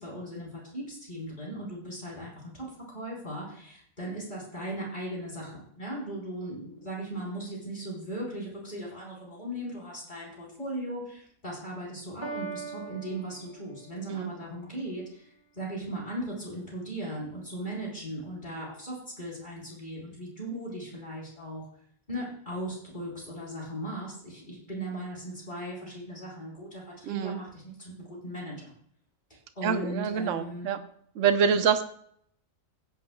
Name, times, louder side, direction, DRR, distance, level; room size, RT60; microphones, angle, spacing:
voice 1, 0.0-15.3 15.5-21.7 22.1-28.7 29.5-30.7, right 1 dB, 35° left, -4 dB, 4.4 m, -38 dB
Piano, 12.2-14.2, right 4 dB, 20° right, 2.9 m, -40 dB
voice 2, 27.0-27.4 29.6-30.8 31.2-31.8, right 7 dB, 70° right, 9 dB, 1.1 m, -26 dB
16.5 x 9.7 x 2.2 m, 0.64 s
omnidirectional pair, 1.4 m